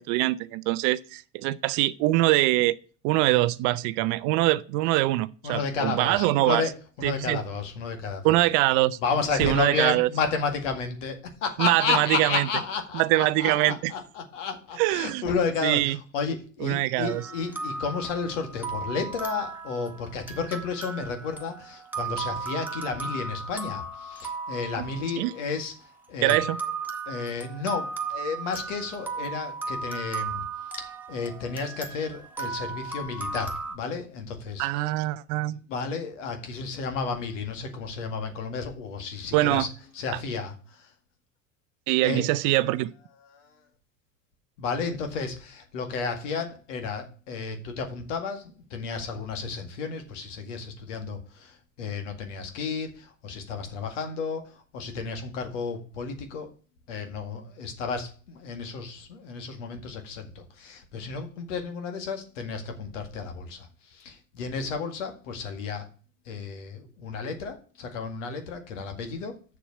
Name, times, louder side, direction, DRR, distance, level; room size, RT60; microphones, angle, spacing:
voice 1, 0.0-2.8 3.0-6.6 7.0-7.4 8.2-9.0 9.4-10.1 11.6-12.5 12.9-13.9 14.8-15.3 15.6-16.0 16.6-17.2 24.8-24.9 25.2-25.3 26.2-26.6 34.6-35.6 39.3-39.7 41.9-42.9, right 17 dB, 45° right, 0.5 m, -23 dB
voice 2, 5.4-6.7 7.0-8.4 9.0-25.7 26.1-26.4 27.1-30.5 30.8-34.7 35.5-39.7 39.9-40.9 42.0-42.3 44.6-48.4 48.7-56.5 56.9-65.9 66.3-69.3, left 5 dB, 65° left, 1.9 m, -32 dB
sound 1, 17.1-25.7 26.3-33.8, right 4 dB, 5° right, 1.5 m, -36 dB
7.4 x 6.9 x 5.4 m
figure-of-eight pair, 75°, 40 cm